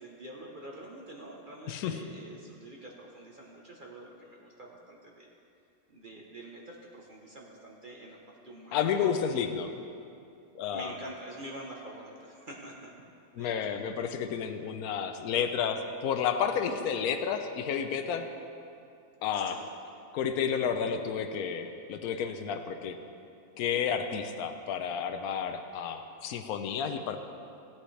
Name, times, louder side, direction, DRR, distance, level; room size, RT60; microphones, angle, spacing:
voice 1, 0.0-5.3 5.9-8.2 8.4-9.1 10.7-12.9 13.4-13.5 19.3-19.7, right 1 dB, 35° right, -2 dB, 1.0 m, -46 dB
voice 2, 1.7-2.0 8.7-9.7 10.5-10.9 13.3-18.3 19.2-19.6 20.1-23.0 23.6-27.2, left 7 dB, 70° left, 7 dB, 1.1 m, -31 dB
17.0 x 8.7 x 3.3 m, 2.6 s
omnidirectional pair, 1.7 m